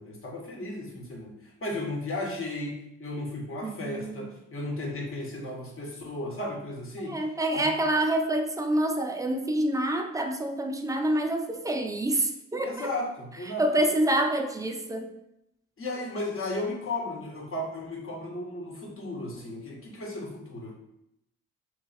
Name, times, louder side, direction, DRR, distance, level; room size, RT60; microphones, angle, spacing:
voice 1, 0.0-7.2 7.5-7.7 12.6-13.8 15.8-20.8, left 2 dB, 35° left, -1 dB, 1.3 m, -35 dB
voice 2, 3.6-4.3 7.0-12.9 13.6-15.1, right 1 dB, 10° right, 5 dB, 0.5 m, -27 dB
3.0 x 2.4 x 4.2 m, 0.82 s
hypercardioid pair, 50°, 37 cm